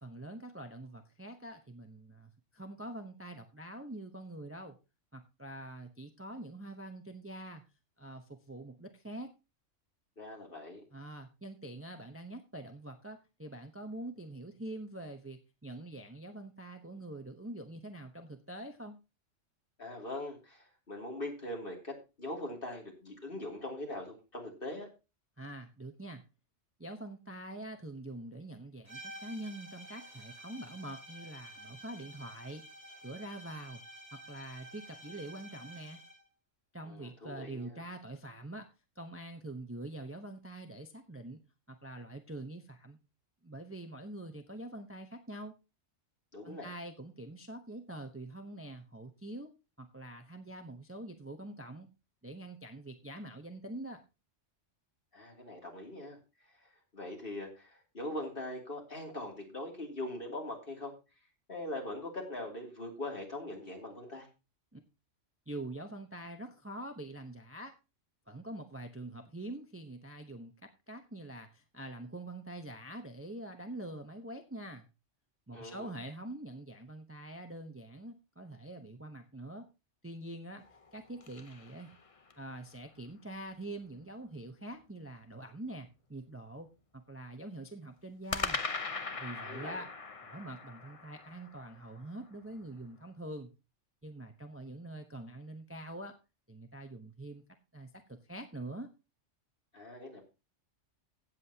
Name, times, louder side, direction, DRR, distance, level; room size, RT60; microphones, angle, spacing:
voice 1, 0.0-4.7 5.1-7.6 8.0-9.3 10.9-19.0 25.4-26.2 26.8-32.6 33.0-33.8 34.1-36.0 36.7-38.7 39.0-41.4 41.7-43.0 43.4-45.5 46.4-49.5 49.8-51.9 52.2-54.0 64.7-64.8 65.5-67.8 68.3-70.5 70.9-74.9 75.5-79.7 80.0-80.6 80.9-81.9 82.4-86.7 86.9-88.6 89.2-89.9 90.2-93.5 94.0-96.1 96.5-97.4 97.7-98.9, right 1 dB, 15° right, 6 dB, 0.8 m, -45 dB
voice 2, 10.2-10.8 19.8-24.9 36.8-37.8 46.3-46.7 55.1-56.2 56.9-60.9 61.5-64.3 75.5-75.9 89.4-89.8 99.7-100.2, left 1 dB, 45° left, 1 dB, 3.0 m, -41 dB
sound 1, 28.9-36.3, right 1 dB, 60° right, 2.1 m, -51 dB
sound 2, 80.6-82.5 88.3-92.6, left 4 dB, 30° left, 0.8 m, -40 dB
16.0 x 7.7 x 2.9 m, 0.28 s
omnidirectional pair, 1.3 m